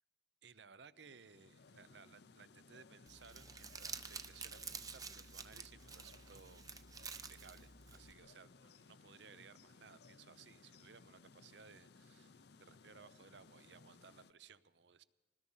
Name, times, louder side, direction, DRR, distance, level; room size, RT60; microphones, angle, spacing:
voice 1, 0.4-15.0, right 6 dB, 70° right, 16 dB, 0.7 m, -60 dB
sound 1, 0.9-14.3, left 4 dB, 60° left, 0.6 m, -62 dB
Crumpling crinkling, 3.1-8.1, right 5 dB, 20° right, 0.8 m, -50 dB
24.5 x 19.5 x 5.6 m, 1.2 s
head